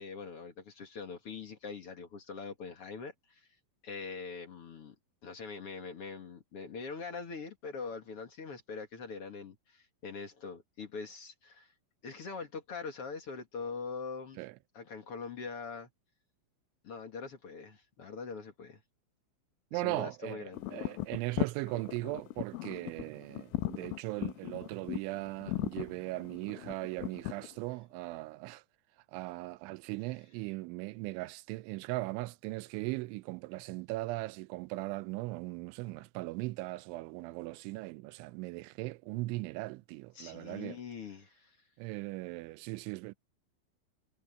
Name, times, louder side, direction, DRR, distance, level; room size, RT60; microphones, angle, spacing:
voice 1, 0.0-3.5 3.8-4.9 5.2-11.7 12.0-14.4 14.7-15.9 16.8-18.8 19.7-20.7 40.1-41.6, left 5 dB, 50° left, 1.8 m, -43 dB
voice 2, 19.7-28.6 29.1-40.8 41.8-43.1, right 21 dB, 80° right, 2.9 m, -38 dB
sound 1, 20.5-27.6, left 17 dB, 85° left, 3.2 m, -37 dB
omnidirectional pair, 5.5 m